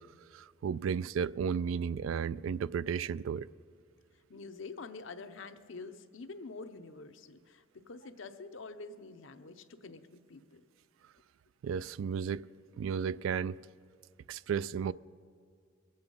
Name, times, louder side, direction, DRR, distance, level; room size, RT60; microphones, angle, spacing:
voice 1, 0.3-3.5 11.6-12.5 12.8-13.6 14.3-14.9, right 7 dB, 85° right, 0.3 m, -33 dB
voice 2, 4.3-10.6, left 3 dB, 70° left, 0.7 m, -47 dB
22.5 x 8.0 x 5.3 m
head